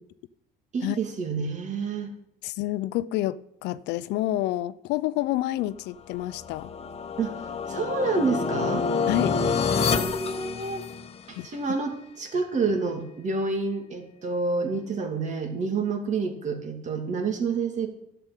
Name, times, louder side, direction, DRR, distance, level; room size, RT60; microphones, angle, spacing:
voice 1, 0.7-2.1 7.2-8.9 9.8-10.8 11.3-17.9, right 4 dB, 45° right, 2.6 m, -28 dB
voice 2, 2.4-6.7 9.1-9.4 11.4-11.5, left 15 dB, 90° left, 0.5 m, -28 dB
sound 1, 6.1-11.3, left 5 dB, 35° left, 1.1 m, -28 dB
11.5 x 7.0 x 9.0 m
cardioid pair, 110°, 17 cm